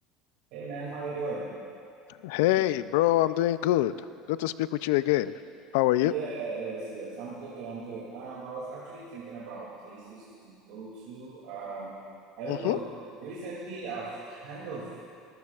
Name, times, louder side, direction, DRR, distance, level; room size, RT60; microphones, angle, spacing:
voice 1, 0.5-1.5 6.0-11.9 12.4-12.8 13.1-14.9, right 4 dB, 70° right, -6 dB, 2.5 m, -38 dB
voice 2, 2.2-3.9 4.3-5.3 5.7-6.1 12.5-12.8, left 15 dB, 80° left, 15 dB, 0.4 m, -25 dB
26.0 x 14.0 x 2.4 m, 2.4 s
cardioid pair, 180°, 0 cm